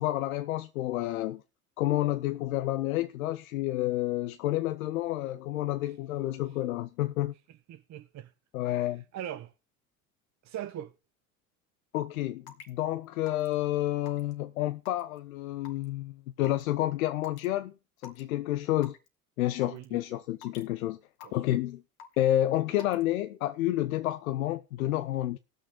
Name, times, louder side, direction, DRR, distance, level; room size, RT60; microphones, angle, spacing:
voice 1, 0.0-1.4 1.8-7.3 8.5-9.0 11.9-17.7 18.0-18.9 19.4-21.8 22.2-25.4, left 14 dB, 85° left, 0.6 m, -30 dB
voice 2, 7.7-8.3 8.6-9.5 10.4-10.9 19.6-19.8 21.2-21.6, right 11 dB, 40° right, 0.8 m, -41 dB
Raindrop / Water tap faucet / Drip, 12.5-12.7 13.3-13.5 14.1-14.3 14.8-15.2 15.6-15.8 16.4-16.6 17.2-17.4 18.0-18.2 18.8-19.1 19.6-19.8 20.4-20.7 21.2-21.5 22.0-22.3 22.8-23.0, left 7 dB, 65° left, 1.9 m, -47 dB
18.5 x 6.5 x 3.7 m
hypercardioid pair, 65°, 41 cm